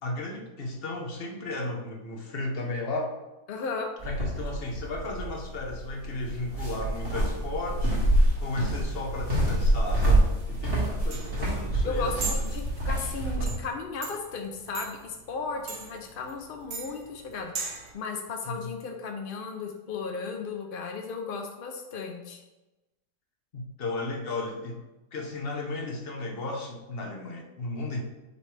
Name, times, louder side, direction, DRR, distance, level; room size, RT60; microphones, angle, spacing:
voice 1, 0.0-3.1 4.0-12.1 18.5-18.7 23.5-24.8 25.1-28.0, left 2 dB, 45° left, 2 dB, 0.9 m, -34 dB
voice 2, 3.5-3.9 11.8-22.4, left 4 dB, 70° left, 3 dB, 0.5 m, -35 dB
sound 1, 4.0-13.5, right 1 dB, 35° right, 1.9 m, -27 dB
sound 2, 11.1-17.9, right 4 dB, 75° right, 1.4 m, -39 dB
9.4 x 3.2 x 3.3 m, 1.0 s
omnidirectional pair, 1.7 m